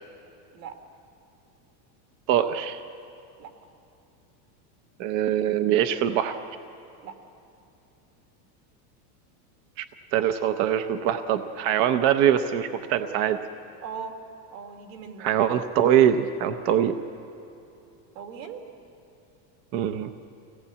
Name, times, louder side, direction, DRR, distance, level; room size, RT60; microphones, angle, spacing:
voice 1, 2.3-2.8 5.0-6.4 9.8-9.9 10.1-13.4 15.2-16.9 19.7-20.1, right 10 dB, 35° right, 9 dB, 0.7 m, -23 dB
voice 2, 13.8-14.2 14.5-15.4 18.1-18.6, right 6 dB, 80° right, 4 dB, 2.9 m, -39 dB
24.5 x 18.0 x 8.4 m, 2.7 s
supercardioid pair, 170°, 50 cm